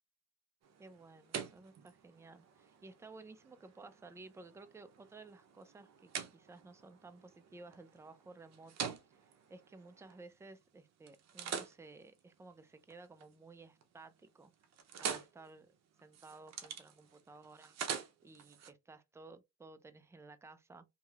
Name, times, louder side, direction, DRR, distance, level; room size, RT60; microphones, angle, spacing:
sound 1, 0.6-10.6 11.1-13.3 13.7-14.1 14.4-18.7, right 7 dB, 60° right, 0.7 m, -46 dB
voice 1, 0.8-8.9 9.5-14.5 15.0-15.7 16.0-17.8 18.2-20.9, right 3 dB, 10° right, 0.4 m, -55 dB
2.9 x 2.8 x 2.3 m
cardioid pair, 90°, 30 cm